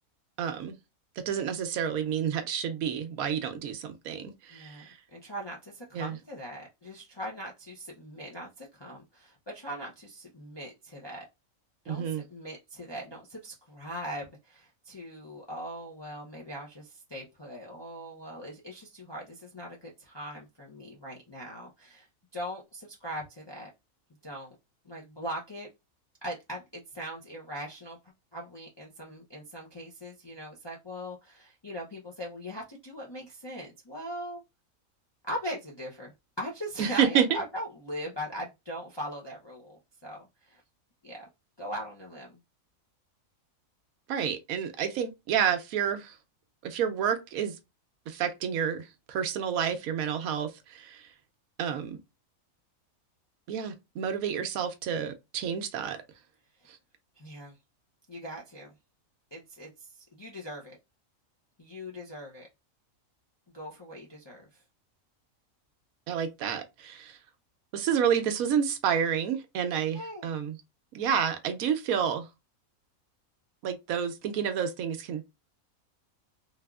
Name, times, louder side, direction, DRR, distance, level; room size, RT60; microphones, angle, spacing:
voice 1, 0.4-0.8 1.2-5.0 5.9-6.2 11.9-12.2 36.8-37.4 44.1-46.2 46.6-47.6 48.1-51.1 51.6-52.0 53.5-56.0 56.7-56.8 66.1-67.2 67.7-70.6 70.9-72.3 73.6-75.2, right 8 dB, 90° right, 1.1 m, -29 dB
voice 2, 4.5-11.3 11.8-12.0 12.3-22.1 22.3-23.7 24.2-24.5 24.8-25.7 26.2-28.0 28.3-34.4 35.3-36.1 36.4-40.6 41.0-41.2 41.6-42.4 57.2-57.5 58.1-58.7 59.3-60.8 61.6-62.5 63.5-64.4 69.9-70.3, equal, 45° left, 0.3 m, -40 dB
3.3 x 2.3 x 2.3 m
omnidirectional pair, 1.5 m